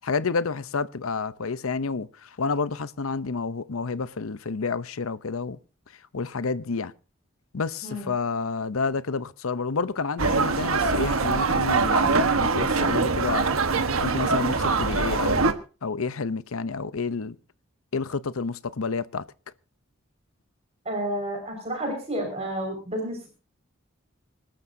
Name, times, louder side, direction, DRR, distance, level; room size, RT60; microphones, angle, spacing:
voice 1, 0.0-5.6 5.9-6.9 7.5-13.5 14.0-15.5 15.8-17.4 17.9-19.3, left 4 dB, 85° left, 0.7 m, -29 dB
sound 1, 10.2-15.5, right 4 dB, 85° right, 1.3 m, -23 dB
voice 2, 20.9-23.3, right 1 dB, 30° right, 5.2 m, -30 dB
26.0 x 13.0 x 2.7 m
head